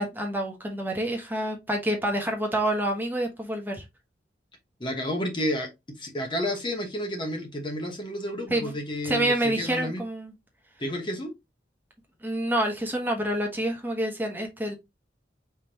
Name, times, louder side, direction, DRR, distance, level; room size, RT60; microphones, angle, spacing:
voice 1, 0.0-3.8 8.5-8.7 9.0-10.3 12.2-14.8, right 1 dB, 10° right, 1.1 m, -27 dB
voice 2, 4.8-10.0 10.8-11.3, left 1 dB, 30° left, 1.0 m, -31 dB
5.0 x 3.5 x 2.9 m
head